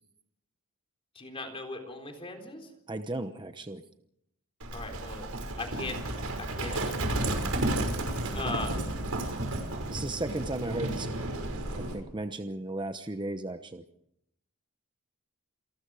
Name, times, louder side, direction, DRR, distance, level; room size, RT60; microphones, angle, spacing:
voice 1, 1.2-2.7 4.7-5.3 5.6-6.0 6.4-7.3 8.3-8.9, left 2 dB, 25° left, 3 dB, 3.9 m, -38 dB
voice 2, 2.9-3.8 9.9-11.1 11.7-13.8, right 2 dB, 20° right, 8 dB, 0.9 m, -35 dB
Livestock farm animals working animals, 4.6-12.0, right 1 dB, 75° right, 5.7 m, -32 dB
28.0 x 20.0 x 5.0 m, 0.75 s
head